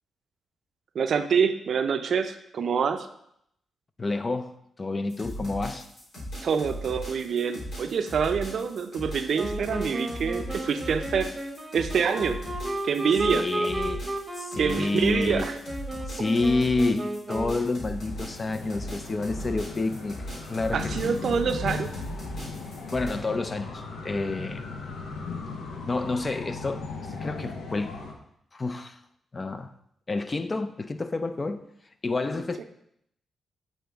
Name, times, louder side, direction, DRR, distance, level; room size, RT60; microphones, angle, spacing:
voice 1, 0.9-3.1 6.4-11.3 11.7-12.4 12.8-13.5 14.6-15.6 20.7-21.9 32.6-32.7, right 6 dB, 65° right, 0.4 m, -26 dB
voice 2, 4.0-5.9 13.3-14.1 14.4-15.5 16.1-20.2 20.5-21.1 22.9-24.7 25.8-28.0 28.5-29.0 29.3-29.7 30.1-31.6 32.0-32.6, left 3 dB, 35° left, 0.5 m, -29 dB
sound 1, 5.1-23.1, equal, 70° left, 2.4 m, -38 dB
Wind instrument woodwind instrument, 9.3-17.8, right 1 dB, 20° right, 0.8 m, -34 dB
sound 2, 17.8-28.1, left 4 dB, 85° left, 0.9 m, -38 dB
8.2 x 4.0 x 3.5 m
cardioid pair, 75°, 0 cm